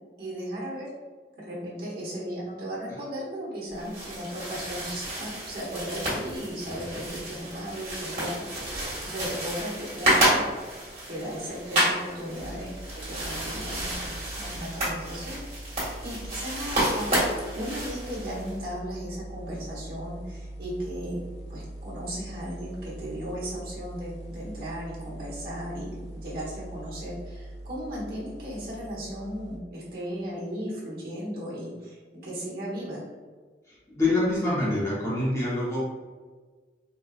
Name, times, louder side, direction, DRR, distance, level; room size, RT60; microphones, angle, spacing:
voice 1, 0.2-0.9 1.4-8.7 9.0-10.5 11.1-17.2 17.5-21.2 21.5-33.0, equal, 55° right, -5 dB, 1.1 m, -36 dB
sound 1, 3.7-18.5, right 1 dB, 35° right, 1.5 m, -30 dB
sound 2, 12.4-29.6, right 1 dB, 75° left, 0.5 m, -42 dB
voice 2, 33.7-35.8, left 2 dB, 15° left, -7 dB, 0.8 m, -26 dB
4.0 x 2.3 x 2.4 m, 1.4 s
head